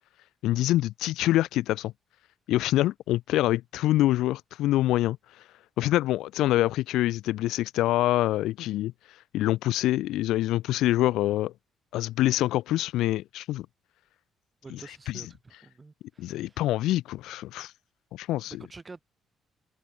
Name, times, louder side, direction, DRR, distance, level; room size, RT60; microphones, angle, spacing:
voice 1, 0.4-1.9 2.5-5.2 5.8-8.9 9.3-11.5 11.9-13.7 14.7-14.8 15.1-15.2 16.2-17.7 18.1-18.6, left 15 dB, 90° left, 0.3 m, -25 dB
voice 2, 14.6-16.6 18.5-19.0, right 3 dB, 25° right, 2.2 m, -48 dB
open air
cardioid pair, 95°, 0 cm